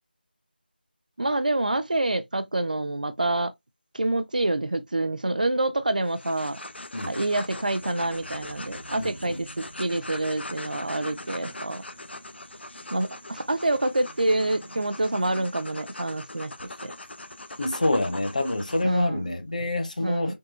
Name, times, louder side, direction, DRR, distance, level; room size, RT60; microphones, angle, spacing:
voice 1, 1.2-3.5 3.9-6.6 7.1-11.8 12.9-16.5 16.8-16.9 18.8-19.2 20.0-20.3, right 2 dB, 50° right, 0.4 m, -27 dB
sound 1, 6.0-18.8, left 2 dB, 85° left, 0.5 m, -41 dB
sound 2, 7.3-15.5, right 2 dB, 85° right, 0.7 m, -49 dB
voice 2, 9.0-9.5 17.6-20.4, left 1 dB, 45° left, 0.7 m, -27 dB
3.6 x 2.7 x 2.4 m
figure-of-eight pair, 175°, 6 cm